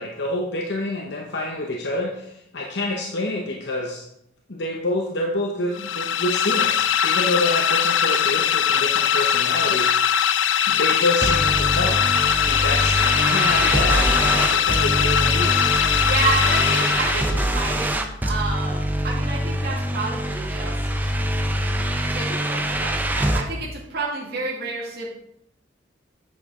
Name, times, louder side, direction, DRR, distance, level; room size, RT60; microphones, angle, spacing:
voice 1, 0.0-4.0 4.5-10.3 10.7-12.1 12.5-15.7, left 1 dB, 65° left, 0 dB, 0.9 m, -27 dB
sound 1, 5.7-17.6, left 9 dB, 85° left, 0.4 m, -21 dB
sound 2, 11.2-23.4, right 1 dB, 10° right, 0.6 m, -24 dB
voice 2, 16.0-20.7 21.0-21.1 22.1-25.1, right 3 dB, 60° right, -4 dB, 2.1 m, -29 dB
8.7 x 6.4 x 3.7 m, 0.79 s
head